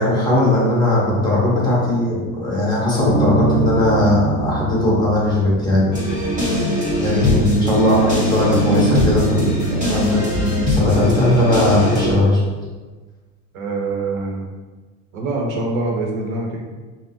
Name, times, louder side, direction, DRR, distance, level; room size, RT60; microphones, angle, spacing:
voice 1, 0.0-5.9 7.0-10.2 10.7-12.4, left 1 dB, 10° left, -8 dB, 1.1 m, -18 dB
Bass guitar, 3.1-6.6, right 3 dB, 50° left, 0.8 m, -24 dB
sound 1, 5.9-12.1, left 1 dB, 20° right, 1.4 m, -21 dB
voice 2, 7.2-7.5 13.5-14.5 15.1-16.6, right 2 dB, 90° right, -1 dB, 0.7 m, -24 dB
3.4 x 2.0 x 2.6 m, 1.3 s
supercardioid pair, 115°, 40 cm